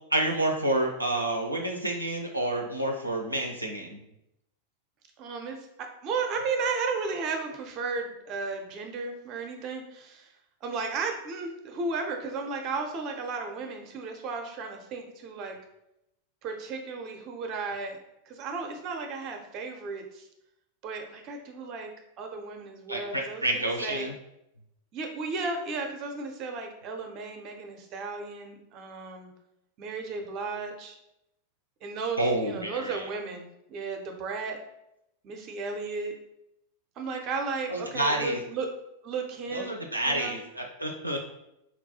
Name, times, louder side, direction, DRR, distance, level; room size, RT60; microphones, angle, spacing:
voice 1, 0.1-4.0 22.9-24.1 32.2-33.0 37.7-38.4 39.5-41.2, right 1 dB, 85° right, 2 dB, 0.4 m, -29 dB
voice 2, 5.2-10.3 10.6-15.6 16.4-18.0 18.2-20.3 20.8-21.9 22.2-24.1 24.9-29.3 29.8-31.0 31.8-34.6 35.2-36.1 37.0-38.7 39.0-39.8 40.0-40.4, right 4 dB, 35° right, 4 dB, 0.5 m, -34 dB
4.2 x 2.3 x 2.7 m, 0.83 s
figure-of-eight pair, 90°, 0 cm